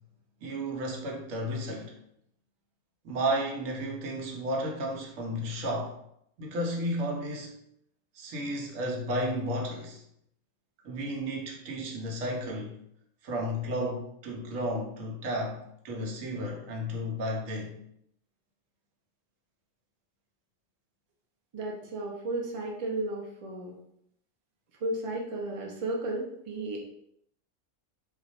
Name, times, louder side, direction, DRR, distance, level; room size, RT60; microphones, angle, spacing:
voice 1, 0.4-2.0 3.0-6.0 6.4-7.6 8.1-10.0 10.8-12.8 13.2-17.8, equal, 85° right, 1 dB, 1.1 m, -33 dB
voice 2, 21.5-23.8 24.8-26.9, right 2 dB, 45° right, -1 dB, 0.4 m, -34 dB
2.4 x 2.2 x 4.0 m, 0.73 s
omnidirectional pair, 1.3 m